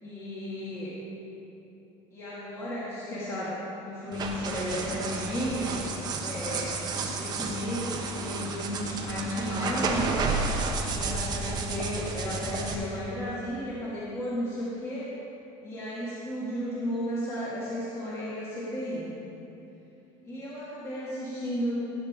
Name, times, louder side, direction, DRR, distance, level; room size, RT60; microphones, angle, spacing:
voice 1, 0.0-1.0 2.1-3.5 3.8-5.7 6.2-6.9 7.2-10.2 10.8-15.1 15.6-19.1 20.2-21.8, equal, 20° left, -9 dB, 2.1 m, -34 dB
sound 1, 4.1-12.7, right 4 dB, 30° right, 1.0 m, -31 dB
18.5 x 7.9 x 3.7 m, 2.9 s
cardioid pair, 160°, 13 cm